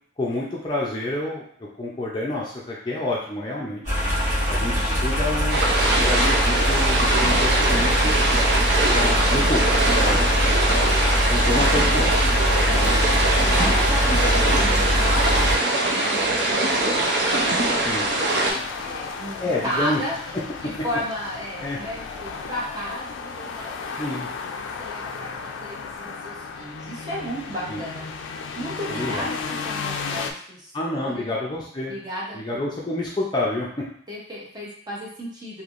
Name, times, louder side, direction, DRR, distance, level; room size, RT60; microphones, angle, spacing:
voice 1, 0.2-1.5 1.8-3.8 4.5-5.6 6.0-8.1 8.9-9.6 10.0-10.5 11.3-12.1 17.8-18.1 19.4-20.0 21.6-21.8 24.0-24.3 27.7-27.8 28.9-29.3 30.7-31.9 32.3-33.8, left 1 dB, 25° left, -4 dB, 0.5 m, -28 dB
sound 1, 3.8-15.6, equal, 45° right, 1.4 m, -22 dB
voice 2, 4.5-5.0 10.0-10.3 11.3-11.5 12.7-15.7 15.9-20.2 20.6-23.8 24.1-28.0 28.6-31.2 31.9-32.7 34.1-35.6, equal, 20° right, -5 dB, 0.8 m, -34 dB
sound 2, 5.5-18.5, right 2 dB, 60° right, 0.6 m, -22 dB
sound 3, 13.4-30.3, left 5 dB, 80° left, 0.3 m, -35 dB
3.3 x 2.6 x 2.5 m, 0.63 s
head